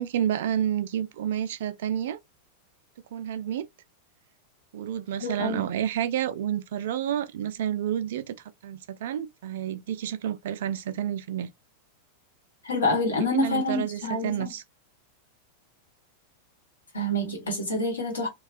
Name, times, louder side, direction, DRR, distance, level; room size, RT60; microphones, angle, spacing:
voice 1, 0.0-2.2 3.1-3.7 4.7-8.4 8.6-11.5 13.4-14.6, right 10 dB, 55° right, 0.3 m, -29 dB
voice 2, 5.2-5.6 12.6-14.5 16.9-18.3, left 1 dB, 70° left, 1.1 m, -27 dB
2.3 x 2.2 x 2.4 m
figure-of-eight pair, 90°, 0 cm